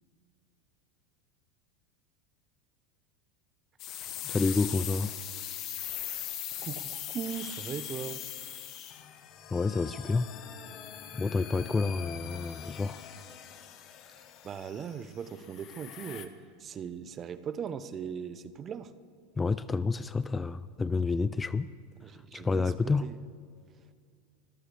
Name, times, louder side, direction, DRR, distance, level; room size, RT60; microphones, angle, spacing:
sound 1, 3.8-16.3, left 11 dB, 45° left, 1.1 m, -41 dB
voice 1, 4.2-5.1 9.5-10.3 11.1-13.0 19.4-21.7 22.3-23.2, left 4 dB, 15° left, 0.3 m, -29 dB
voice 2, 6.6-8.2 14.4-16.3 16.6-18.9 22.0-23.2, right 7 dB, 30° right, 0.7 m, -39 dB
24.5 x 15.0 x 3.4 m
supercardioid pair, 120°, 0 cm